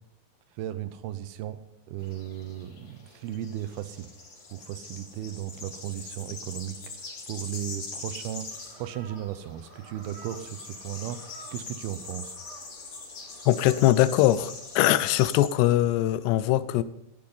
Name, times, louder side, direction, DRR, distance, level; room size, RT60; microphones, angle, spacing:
voice 1, 0.5-1.6 1.9-4.1 4.5-6.9 7.3-12.4, right 12 dB, 80° right, 2.5 m, -36 dB
sound 1, 2.0-15.5, left 3 dB, 40° left, 3.9 m, -43 dB
sound 2, 8.3-15.0, right 2 dB, 25° right, 1.1 m, -52 dB
voice 2, 13.5-16.8, left 14 dB, 85° left, 2.8 m, -22 dB
13.5 x 10.5 x 5.6 m
omnidirectional pair, 4.7 m